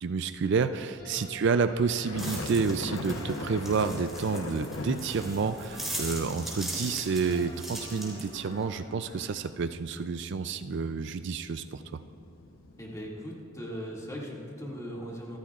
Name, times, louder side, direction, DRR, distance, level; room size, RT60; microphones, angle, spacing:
voice 1, 0.0-12.0, right 5 dB, 60° right, 11 dB, 0.4 m, -29 dB
sound 1, 1.0-9.3, equal, 45° left, 3.5 m, -49 dB
sound 2, 2.0-13.1, left 2 dB, 75° left, 0.9 m, -41 dB
sound 3, 2.2-8.6, right 1 dB, ahead, 3.8 m, -40 dB
voice 2, 12.8-15.4, equal, 15° left, -4 dB, 2.2 m, -39 dB
25.5 x 15.0 x 2.4 m, 2.7 s
head